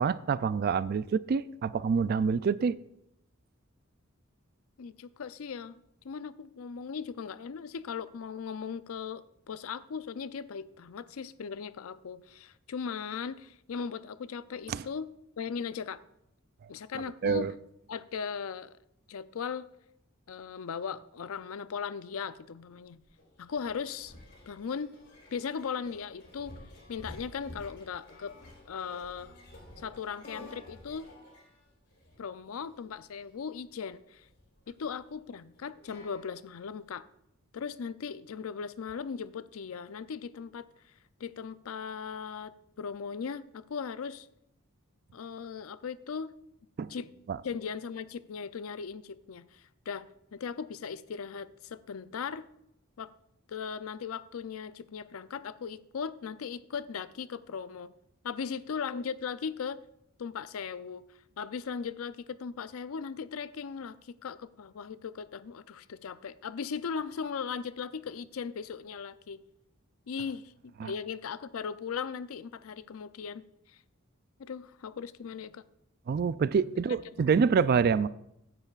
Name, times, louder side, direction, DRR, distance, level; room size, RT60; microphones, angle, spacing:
voice 1, 0.0-2.8 14.7-14.8 16.9-17.5 46.8-46.9 47.3-47.4 70.8-70.9 76.1-78.1, right 5 dB, 45° right, 0.3 m, -27 dB
voice 2, 4.8-5.8 6.0-15.1 15.4-16.0 16.7-17.5 17.9-18.7 19.1-19.7 20.3-23.0 23.4-24.1 24.5-24.9 25.3-26.6 26.9-28.3 28.7-29.3 29.8-31.1 32.2-34.3 34.7-37.1 37.5-40.9 41.2-44.3 45.1-46.3 46.9-47.1 47.4-52.5 53.0-53.1 53.5-57.9 58.2-59.8 60.2-61.1 61.4-69.4 70.1-73.8 74.4-75.6 77.2-77.3, left 6 dB, 80° left, 0.5 m, -38 dB
sound 1, 22.8-36.8, left 1 dB, 55° left, 3.8 m, -52 dB
15.5 x 9.8 x 2.4 m
head